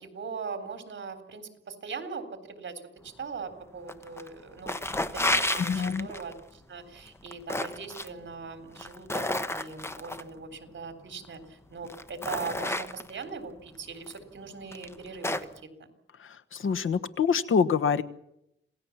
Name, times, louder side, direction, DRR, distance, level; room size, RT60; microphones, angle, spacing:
voice 1, 0.0-2.7 3.0-15.4, right 5 dB, 60° right, 9 dB, 3.7 m, -40 dB
sound 1, 3.9-4.3 4.6-6.3 7.1-8.1 8.7-10.2 11.2-11.3 11.8-13.2 14.1-14.2 14.7-15.6, left 1 dB, 10° left, 1.1 m, -31 dB
voice 2, 5.5-6.1 16.5-18.0, left 6 dB, 75° left, 12 dB, 1.3 m, -25 dB
27.0 x 17.5 x 7.2 m, 0.80 s
wide cardioid pair, 150°, 21 cm